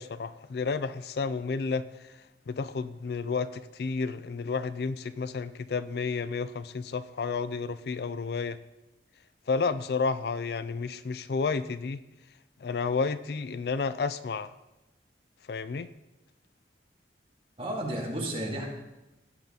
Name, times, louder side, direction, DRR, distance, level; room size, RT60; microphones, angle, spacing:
voice 1, 0.0-2.2 2.5-8.6 9.5-12.0 12.6-14.5 15.5-15.9, left 4 dB, 60° left, 14 dB, 0.4 m, -31 dB
voice 2, 17.6-18.7, right 1 dB, 30° right, -2 dB, 2.1 m, -32 dB
16.5 x 5.9 x 3.8 m, 1.0 s
head